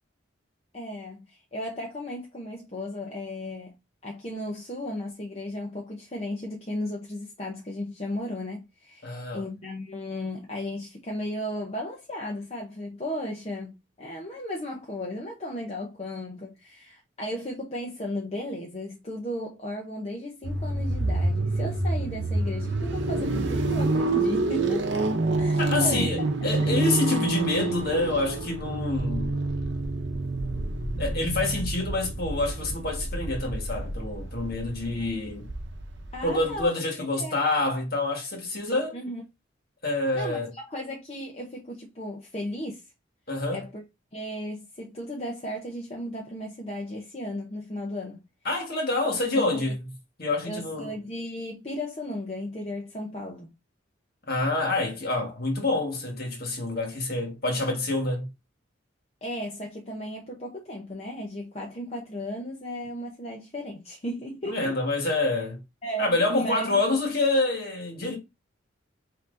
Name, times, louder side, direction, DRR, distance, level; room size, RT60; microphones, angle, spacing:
voice 1, 0.7-3.7 4.0-25.0 25.4-26.2 26.5-26.8 36.1-36.7 37.1-37.4 38.9-39.2 40.1-42.8 43.5-43.8 44.1-48.2 49.4-49.7 50.4-53.5 59.2-64.8 65.8-66.8, left 1 dB, 30° left, 0.8 m, -35 dB
voice 2, 9.0-9.4 25.6-29.3 31.0-35.5 36.2-39.0 39.8-40.5 43.3-43.6 48.4-49.8 50.2-50.9 54.3-58.3 64.5-65.6 66.0-68.2, left 2 dB, 50° left, 1.6 m, -27 dB
sound 1, 20.4-36.6, right 2 dB, 60° right, 0.8 m, -28 dB
5.8 x 2.8 x 2.6 m
head